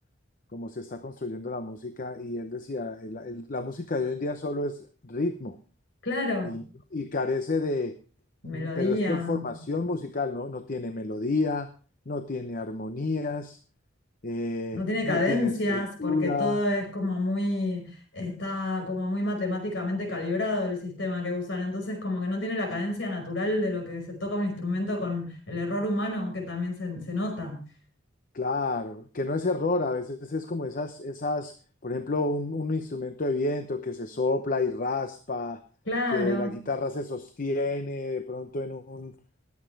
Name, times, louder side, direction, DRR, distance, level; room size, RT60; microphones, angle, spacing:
voice 1, 0.5-5.6 6.4-6.6 6.9-8.0 8.5-11.7 12.1-13.6 14.2-16.6 28.3-31.5 31.8-35.6 36.1-39.1, left 3 dB, 45° left, 8 dB, 0.8 m, -30 dB
voice 2, 6.0-6.6 8.4-9.6 14.7-27.6 35.9-36.6, left 2 dB, 70° left, 4 dB, 5.3 m, -29 dB
20.5 x 8.3 x 3.3 m, 0.36 s
head